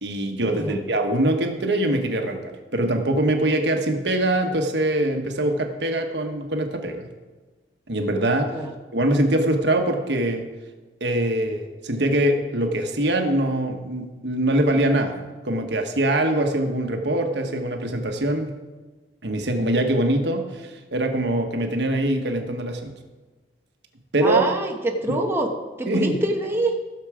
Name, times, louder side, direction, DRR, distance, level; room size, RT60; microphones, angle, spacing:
voice 1, 0.0-7.1 7.9-8.6 8.9-10.4 11.0-15.2 15.4-18.5 19.2-22.9 24.1-24.4 25.1-25.2 25.9-26.2, right 1 dB, 75° right, 4 dB, 1.3 m, -23 dB
voice 2, 24.2-25.5 25.8-26.7, right 2 dB, 15° right, 0 dB, 1.2 m, -25 dB
16.0 x 6.9 x 4.9 m, 1.3 s
head